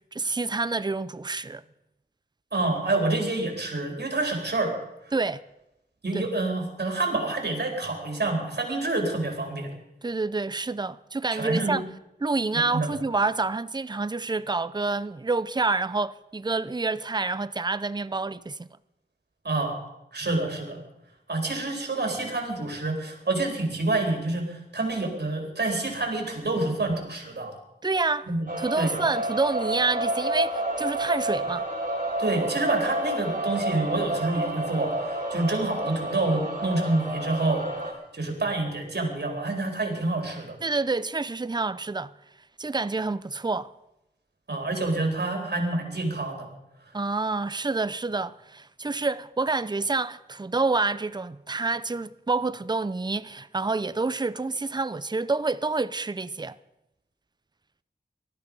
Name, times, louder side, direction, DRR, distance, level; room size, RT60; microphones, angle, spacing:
voice 1, 0.1-1.6 5.1-5.4 6.1-6.2 10.0-11.8 12.2-18.7 27.8-28.3 28.6-31.7 40.6-42.1 42.6-43.7 46.9-56.6, right 3 dB, 25° right, 0.6 m, -28 dB
voice 2, 2.5-4.7 6.0-9.7 11.3-11.8 12.5-12.9 19.4-19.8 20.1-20.8 21.3-27.5 28.3-28.5 28.8-29.0 32.2-37.7 38.1-40.6 44.5-46.5, right 2 dB, 65° right, 3.9 m, -27 dB
sound 1, 28.5-37.9, right 1 dB, 50° right, 4.5 m, -30 dB
18.5 x 13.0 x 5.4 m
wide cardioid pair, 65°, 18 cm